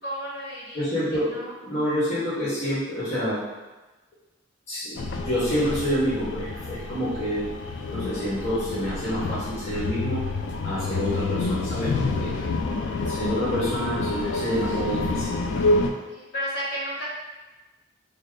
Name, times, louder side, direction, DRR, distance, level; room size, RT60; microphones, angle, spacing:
voice 1, 0.0-1.5 12.4-12.6 16.1-17.0, equal, 60° left, -8 dB, 1.3 m, -33 dB
voice 2, 0.7-3.4 4.7-7.5 7.9-10.2 10.6-12.3 13.1-15.3, equal, 35° left, -11 dB, 1.1 m, -28 dB
sound 1, 5.0-15.9, left 3 dB, 75° left, 0.3 m, -28 dB
3.3 x 2.2 x 3.7 m, 1.1 s
head